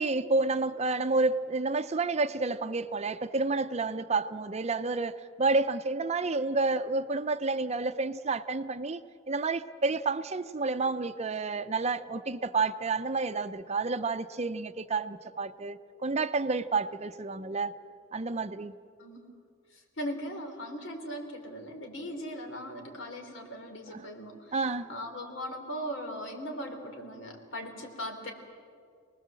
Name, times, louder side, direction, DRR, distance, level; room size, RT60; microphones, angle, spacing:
voice 1, 0.0-9.0 9.3-17.8 18.1-18.8 23.9-24.0 24.5-24.9, right 3 dB, 35° right, 0.6 m, -30 dB
voice 2, 19.7-24.6 24.9-28.3, equal, 75° left, 3.7 m, -39 dB
28.0 x 19.5 x 7.6 m
head